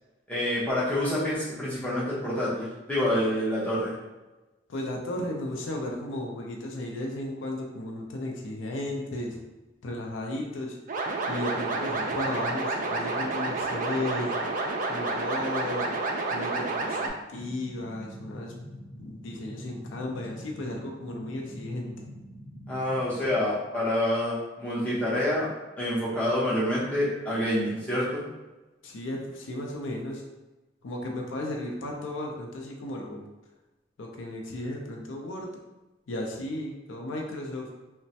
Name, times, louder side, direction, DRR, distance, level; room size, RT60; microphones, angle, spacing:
voice 1, 0.3-4.0 22.7-25.5 25.8-28.2, left 1 dB, 5° left, -9 dB, 0.8 m, -27 dB
voice 2, 4.7-9.4 9.8-10.8 11.3-14.4 14.9-15.9 16.3-18.5 19.0-22.1 28.8-30.2 30.8-33.2 34.0-35.5 36.1-37.7, left 1 dB, 90° left, 1 dB, 0.4 m, -34 dB
sound 1, 10.9-17.1, right 3 dB, 45° right, 0.3 m, -30 dB
sound 2, 17.3-23.4, equal, 30° left, 1.3 m, -44 dB
3.1 x 2.1 x 2.7 m, 1.1 s
head